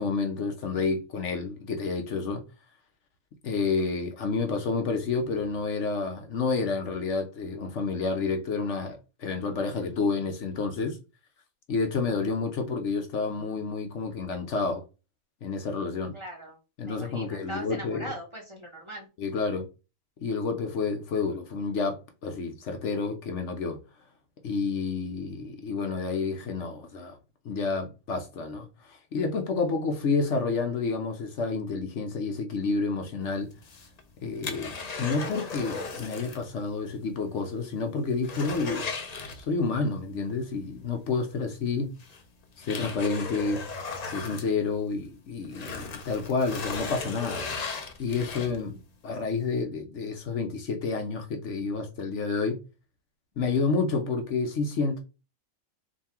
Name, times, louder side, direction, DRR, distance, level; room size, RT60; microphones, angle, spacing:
voice 1, 0.0-2.4 3.4-11.0 11.7-14.8 15.4-16.1 16.8-18.1 19.2-19.6 20.2-23.8 24.4-27.2 27.4-33.5 34.2-34.7 35.0-38.9 39.3-41.9 42.6-43.6 44.1-47.6 48.0-52.6 53.4-55.0, left 4 dB, 65° left, 1.0 m, -29 dB
voice 2, 16.1-16.6 16.8-19.1, right 1 dB, 25° right, 1.0 m, -40 dB
sound 1, 33.5-36.5 36.8-36.9 37.3-37.4 37.8-39.8 41.2-41.3 42.0-45.1 45.4-48.8 49.3-49.4, left 4 dB, 45° left, 0.6 m, -37 dB
3.6 x 2.7 x 4.3 m
omnidirectional pair, 1.4 m